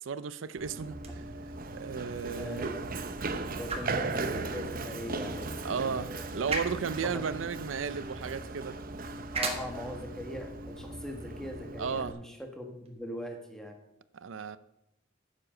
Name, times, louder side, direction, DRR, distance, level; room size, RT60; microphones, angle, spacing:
voice 1, 0.0-1.2 1.7-2.7 5.6-8.8 11.8-12.1 14.1-14.6, right 6 dB, 85° right, 0.5 m, -34 dB
Run, 0.6-12.1, right 3 dB, 50° right, 0.8 m, -38 dB
sound 1, 0.9-12.9, right 3 dB, 30° right, 1.5 m, -43 dB
voice 2, 2.4-2.8 3.5-6.5 7.1-7.2 9.3-13.7, equal, 5° left, 1.6 m, -41 dB
9.8 x 7.5 x 6.5 m
head